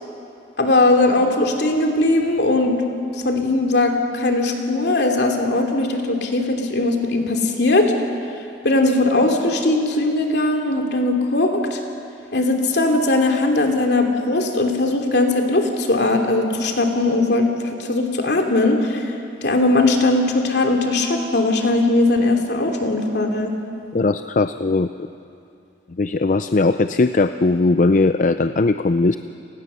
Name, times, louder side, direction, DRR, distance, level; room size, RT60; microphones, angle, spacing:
voice 1, 0.6-2.8 3.2-7.9 8.6-11.8 12.3-19.1 19.4-23.5, left 2 dB, 65° left, 3 dB, 2.8 m, -19 dB
voice 2, 23.9-25.1 25.9-29.2, left 3 dB, 45° left, 10 dB, 0.5 m, -19 dB
30.0 x 19.0 x 6.9 m, 2.6 s
head